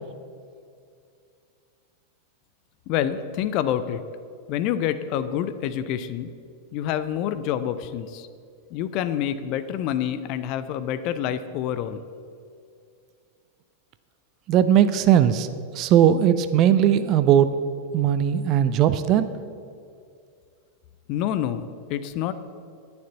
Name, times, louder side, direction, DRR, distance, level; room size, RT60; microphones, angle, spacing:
voice 1, 2.9-4.0 4.5-6.3 6.7-8.3 8.7-12.0 21.1-21.6 21.9-22.3, left 10 dB, 40° left, 12 dB, 0.5 m, -27 dB
voice 2, 14.5-15.5 15.8-17.5 17.9-19.3, right 10 dB, 35° right, 12 dB, 0.4 m, -18 dB
9.2 x 6.9 x 8.0 m, 2.3 s
figure-of-eight pair, 90°, 0 cm